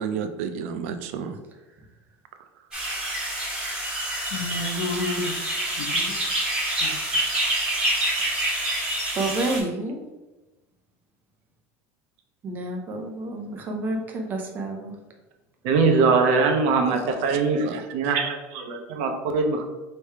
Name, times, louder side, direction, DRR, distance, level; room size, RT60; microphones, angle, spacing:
voice 1, 0.0-1.4 17.3-18.1, right 7 dB, 90° right, 9 dB, 0.5 m, -32 dB
sound 1, 2.7-9.6, right 1 dB, 10° right, 1.3 m, -27 dB
voice 2, 4.3-6.3 6.8-7.5, left 2 dB, 75° left, 3 dB, 0.8 m, -32 dB
voice 3, 9.1-10.0 12.4-15.0, right 2 dB, 25° right, 2 dB, 0.7 m, -29 dB
voice 4, 15.6-17.7 17.9-19.6, right 4 dB, 70° right, 4 dB, 0.8 m, -22 dB
3.3 x 3.1 x 4.5 m, 1.1 s
cardioid pair, 160°, 7 cm